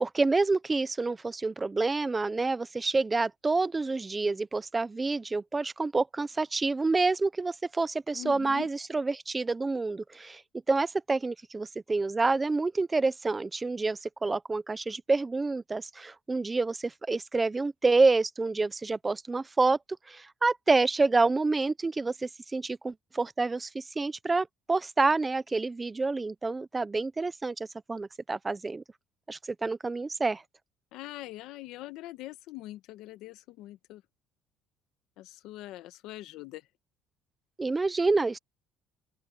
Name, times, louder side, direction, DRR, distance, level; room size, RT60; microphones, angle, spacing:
voice 1, 0.0-10.4 10.7-19.8 20.1-28.8 29.3-30.4 37.6-38.4, right 3 dB, 15° right, 0.6 m, -28 dB
voice 2, 8.1-8.7 30.9-34.0 35.2-36.6, left 16 dB, 70° left, 1.3 m, -43 dB
open air
cardioid pair, 150°, 0 cm